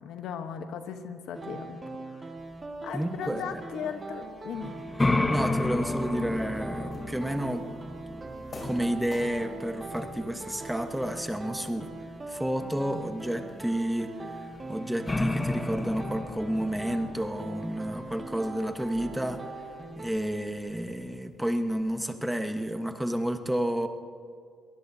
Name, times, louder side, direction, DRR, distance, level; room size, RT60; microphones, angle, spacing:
voice 1, 0.0-1.8 2.1-2.3 2.8-4.8, left 7 dB, 75° left, 7 dB, 1.1 m, -37 dB
sound 1, 1.3-20.1, right 2 dB, 30° right, 1.9 m, -41 dB
voice 2, 2.9-3.6 5.3-7.8 8.6-11.9 12.3-14.1 14.4-19.4 20.0-23.9, equal, 5° right, 6 dB, 1.2 m, -31 dB
sound 2, 4.5-11.3 14.6-14.7 15.1-19.4, left 2 dB, 20° left, 0.9 m, -32 dB
sound 3, 6.9-16.0, left 2 dB, 40° left, 4.2 m, -50 dB
23.5 x 19.0 x 2.8 m, 2.2 s
supercardioid pair, 75°, 0 cm